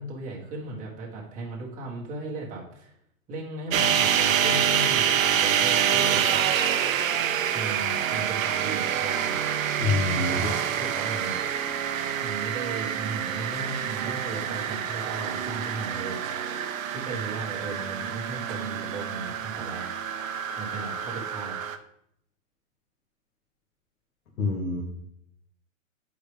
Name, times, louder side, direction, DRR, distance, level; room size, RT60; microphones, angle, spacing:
voice 1, 0.0-2.9 3.3-6.5 7.5-9.4 10.1-11.4 12.2-16.2 16.9-19.9 20.5-21.5, right 3 dB, 20° right, -4 dB, 1.5 m, -36 dB
sound 1, 3.7-21.8, right 9 dB, 75° right, 0.8 m, -27 dB
voice 2, 9.8-10.3 24.4-24.8, left 4 dB, 70° left, -3 dB, 1.7 m, -26 dB
8.6 x 4.9 x 3.3 m, 0.73 s
hypercardioid pair, 155°, 40 cm